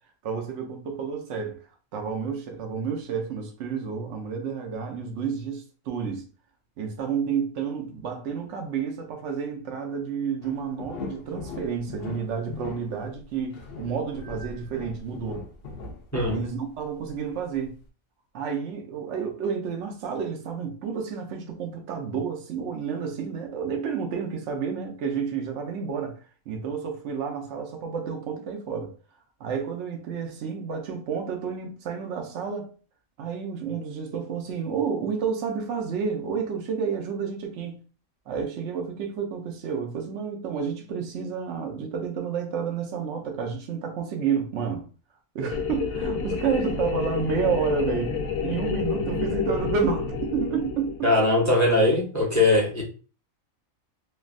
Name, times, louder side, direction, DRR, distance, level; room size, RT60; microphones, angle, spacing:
voice 1, 0.2-1.6 1.9-6.2 6.8-15.5 16.3-17.8 18.3-26.2 26.5-28.9 29.4-32.7 33.2-37.7 38.3-44.8 45.3-50.9, right 6 dB, 65° right, 0.9 m, -30 dB
Wall scrapes int perspective BM.L, 10.4-17.1 17.6-17.7, left 4 dB, 60° left, 0.7 m, -39 dB
sound 1, 45.5-51.2, left 6 dB, 85° left, 1.0 m, -29 dB
voice 2, 51.0-52.8, left 2 dB, 20° left, 0.6 m, -20 dB
3.2 x 2.3 x 2.4 m
omnidirectional pair, 1.4 m